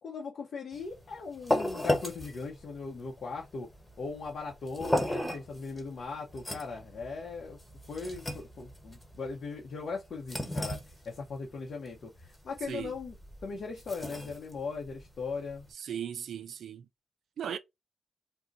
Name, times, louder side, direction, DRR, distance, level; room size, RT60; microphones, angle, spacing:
voice 1, 0.0-3.7 4.0-7.6 7.9-10.8 11.0-13.2 13.4-15.6, left 4 dB, 65° left, 0.7 m, -39 dB
sound 1, 0.7-15.7, left 1 dB, 10° left, 1.2 m, -36 dB
voice 2, 15.8-16.9 17.4-17.6, right 8 dB, 75° right, 0.3 m, -37 dB
2.6 x 2.1 x 3.8 m
cardioid pair, 75°, 0 cm